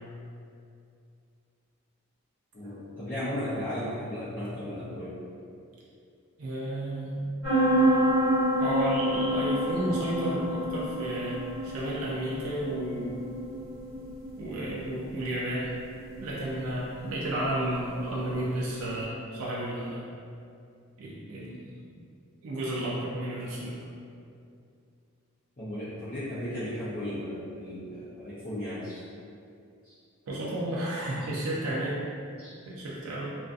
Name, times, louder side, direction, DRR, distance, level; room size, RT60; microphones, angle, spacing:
voice 1, 2.5-5.1 25.6-29.0 29.8-29.9 31.2-31.3 32.4-32.5, left 1 dB, 35° left, -14 dB, 0.5 m, -35 dB
voice 2, 6.4-7.3 8.6-13.2 14.4-15.8 16.2-20.1 21.0-21.8 22.4-23.8 30.3-32.0 32.7-33.3, right 1 dB, 75° right, -6 dB, 0.4 m, -32 dB
sound 1, 7.4-18.9, equal, 60° left, 1.2 m, -29 dB
2.5 x 2.3 x 2.3 m, 2.4 s
head